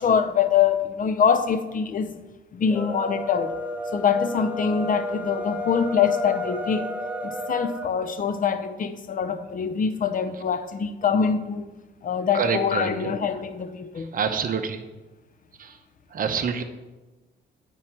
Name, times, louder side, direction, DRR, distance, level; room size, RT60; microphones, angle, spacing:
voice 1, 0.0-2.2 2.5-3.5 3.9-6.9 7.2-11.7 12.0-14.1, left 7 dB, 45° left, 0.7 m, -24 dB
sound 1, 2.6-7.9, equal, 5° right, 0.9 m, -32 dB
voice 2, 12.3-13.2 13.9-14.8 15.6-15.8 16.1-16.6, right 6 dB, 45° right, 0.8 m, -27 dB
9.1 x 4.6 x 4.5 m
cardioid pair, 90°, 20 cm